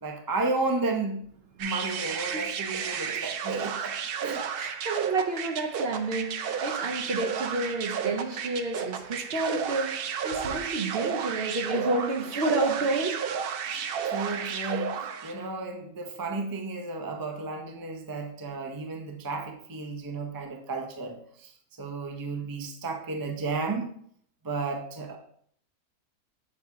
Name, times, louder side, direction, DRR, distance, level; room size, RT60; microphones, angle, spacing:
voice 1, 0.0-1.3 1.6-4.0 4.2-4.4 13.7-21.5 21.8-23.9 24.4-25.2, right 3 dB, 30° right, 3 dB, 0.3 m, -33 dB
sound 1, 1.6-15.4, right 7 dB, 90° right, 0.5 m, -32 dB
voice 2, 4.6-13.2, right 3 dB, 50° right, 3 dB, 0.8 m, -30 dB
7.4 x 2.8 x 4.6 m, 0.63 s
omnidirectional pair, 1.5 m